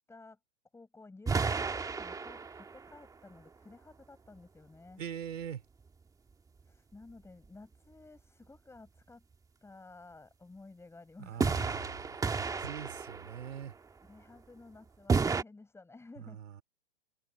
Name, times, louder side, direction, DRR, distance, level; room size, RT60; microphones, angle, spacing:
voice 1, 0.1-0.4 0.7-5.0 6.6-9.2 9.6-11.5 14.0-16.4, left 3 dB, 5° left, 8.0 m, -54 dB
sound 1, 1.3-2.9 11.4-13.6 15.1-15.4, right 5 dB, 10° right, 1.6 m, -32 dB
voice 2, 5.0-5.6 11.3-13.7 16.2-16.6, right 9 dB, 75° right, 3.6 m, -43 dB
open air
hypercardioid pair, 130°, 38 cm